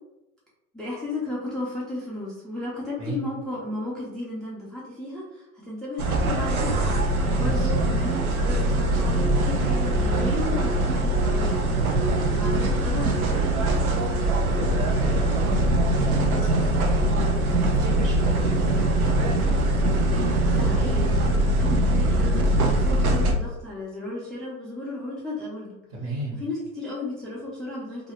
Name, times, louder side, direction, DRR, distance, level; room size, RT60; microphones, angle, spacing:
voice 1, 0.7-12.0 12.4-14.0 20.5-25.8 26.4-28.1, left 2 dB, ahead, -6 dB, 0.3 m, -34 dB
sound 1, 6.0-23.3, right 1 dB, 90° right, 0.7 m, -22 dB
voice 2, 7.2-7.7 14.4-17.2 17.7-19.7 25.9-26.4, right 1 dB, 55° right, -4 dB, 1.1 m, -34 dB
2.7 x 2.5 x 2.9 m, 0.95 s
hypercardioid pair, 105°, 42 cm